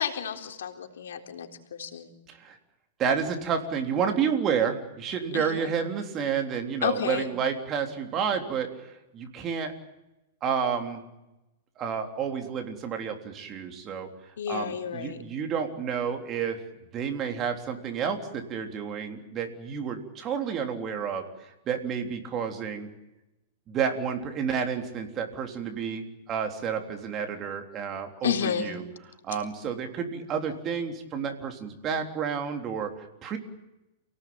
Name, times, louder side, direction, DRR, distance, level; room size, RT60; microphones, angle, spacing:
voice 1, 0.0-2.1 5.3-5.7 6.8-7.3 14.4-15.2 28.2-28.7, left 7 dB, 90° left, 5 dB, 3.9 m, -31 dB
voice 2, 3.0-9.7 10.4-11.0 11.8-14.1 14.5-16.6 16.9-22.9 23.7-28.8 29.2-33.4, right 7 dB, 25° right, 4 dB, 3.6 m, -30 dB
29.0 x 18.5 x 8.9 m, 0.97 s
supercardioid pair, 160°, 0 cm